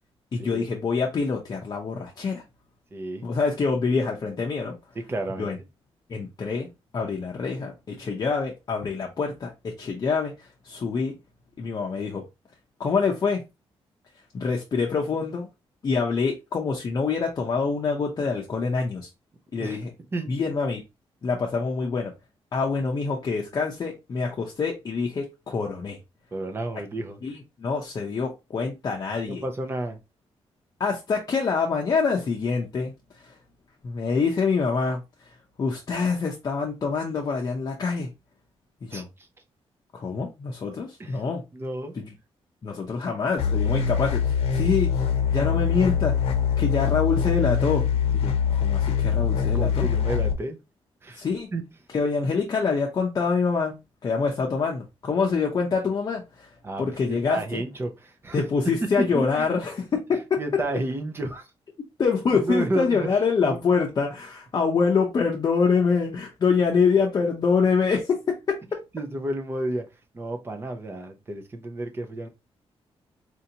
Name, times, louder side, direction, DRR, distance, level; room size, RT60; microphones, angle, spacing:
voice 1, 0.3-2.4 3.2-4.7 5.4-5.6 6.1-6.7 6.9-11.1 11.6-12.2 12.8-13.4 14.3-15.5 15.8-19.1 19.5-19.9 20.3-20.8 21.2-22.1 22.5-26.0 27.2-29.4 30.8-32.9 33.8-35.0 35.6-38.1 38.9-39.1 39.9-41.4 41.9-42.1 42.6-46.1 46.6-47.9 48.1-49.9 51.2-51.5 51.9-53.8 54.0-56.5 56.8-57.6 58.3-60.4 62.0-68.6, left 5 dB, 35° left, 0.6 m, -25 dB
voice 2, 2.9-3.2 4.9-5.5 19.6-19.8 20.1-20.3 26.3-27.2 29.3-30.0 38.9-39.0 41.0-41.2 41.5-41.9 49.5-50.6 51.0-51.2 51.5-51.6 56.6-58.4 58.8-59.5 60.4-61.5 62.3-63.1 63.4-63.6 68.9-69.8 70.1-72.3, right 2 dB, 25° right, 0.6 m, -31 dB
sound 1, 43.4-50.3, left 7 dB, 70° left, 0.8 m, -23 dB
4.4 x 2.6 x 2.8 m
wide cardioid pair, 170°, 10 cm